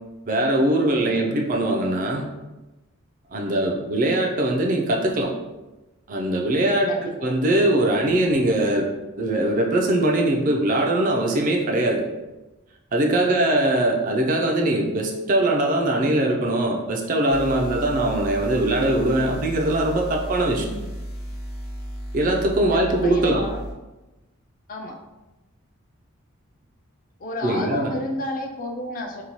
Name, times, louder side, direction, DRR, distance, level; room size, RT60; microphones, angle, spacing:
voice 1, 0.3-2.2 3.3-5.3 6.1-8.9 9.2-12.0 12.9-20.6 22.1-23.4 27.4-27.9, right 1 dB, 40° right, 0 dB, 0.3 m, -21 dB
voice 2, 6.9-7.3 13.3-13.5 20.5-20.9 22.7-23.6 24.7-24.9 27.2-29.2, left 1 dB, 40° left, 1 dB, 0.3 m, -32 dB
sound 1, 17.3-23.7, equal, 85° left, 0.9 m, -34 dB
2.7 x 2.2 x 2.9 m, 1.1 s
head